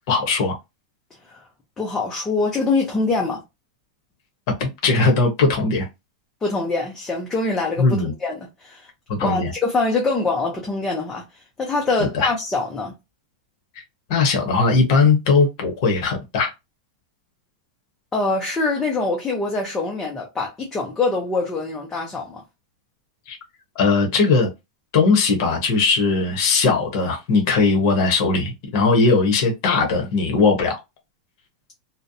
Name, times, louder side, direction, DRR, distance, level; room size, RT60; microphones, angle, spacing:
voice 1, 0.1-0.5 4.6-5.8 7.8-8.1 9.2-9.5 12.0-12.3 14.1-16.5 23.3-23.4 23.8-24.5 24.9-30.8, left 4 dB, 40° left, 0.7 m, -19 dB
voice 2, 1.8-3.4 6.4-8.9 9.2-11.2 11.6-12.9 18.1-22.4, left 3 dB, 10° left, 0.4 m, -24 dB
2.6 x 2.0 x 2.5 m
supercardioid pair, 180°, 4 cm